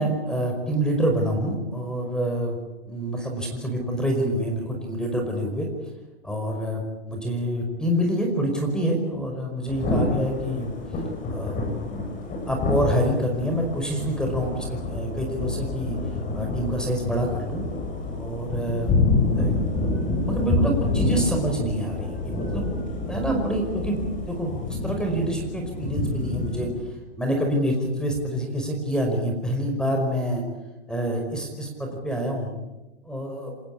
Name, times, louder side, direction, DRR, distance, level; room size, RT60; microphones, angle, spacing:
voice 1, 0.0-2.6 2.9-5.7 6.2-10.7 11.3-11.6 12.5-16.0 16.3-17.6 18.2-19.0 19.4-19.6 20.2-22.7 23.0-24.0 24.3-26.7 27.2-30.4 30.9-32.5 33.1-33.5, right 1 dB, ahead, 2 dB, 5.2 m, -26 dB
Thunder / Rain, 9.7-26.7, left 3 dB, 25° left, 7.8 m, -27 dB
27.0 x 20.0 x 8.6 m, 1.1 s
hypercardioid pair, 130°, 33 cm